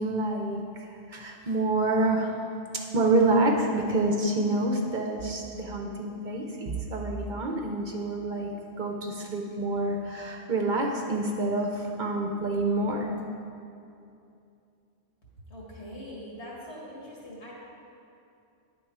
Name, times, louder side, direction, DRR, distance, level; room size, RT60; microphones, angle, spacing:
voice 1, 0.0-2.4 2.9-8.5 8.8-13.1, right 2 dB, 55° right, 1 dB, 0.7 m, -27 dB
voice 2, 15.5-17.5, equal, 75° left, -5 dB, 2.1 m, -42 dB
10.0 x 3.9 x 4.8 m, 2.6 s
omnidirectional pair, 1.1 m